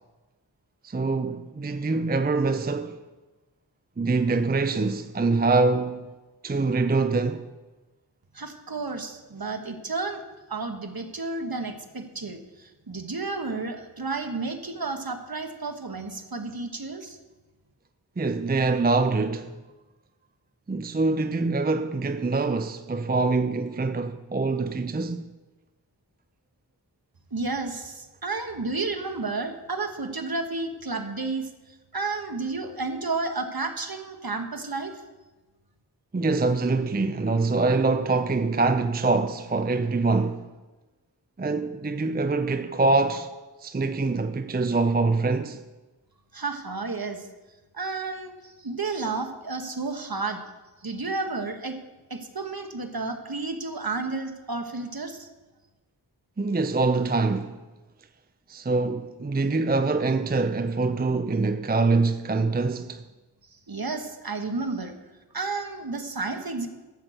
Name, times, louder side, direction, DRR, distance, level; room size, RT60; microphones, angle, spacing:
voice 1, 0.8-3.0 4.0-6.1 6.4-7.5 18.2-19.5 20.7-25.2 36.1-40.5 41.4-43.3 43.6-45.6 56.4-57.6 58.5-63.0, right 3 dB, 20° right, 0.5 m, -24 dB
voice 2, 8.3-10.2 10.5-17.2 27.3-31.5 31.9-34.9 46.3-47.2 47.7-50.4 50.8-51.8 52.1-55.3 63.7-64.9 65.3-66.7, right 3 dB, 55° right, 1.3 m, -31 dB
13.0 x 6.0 x 7.8 m
wide cardioid pair, 50°, 43 cm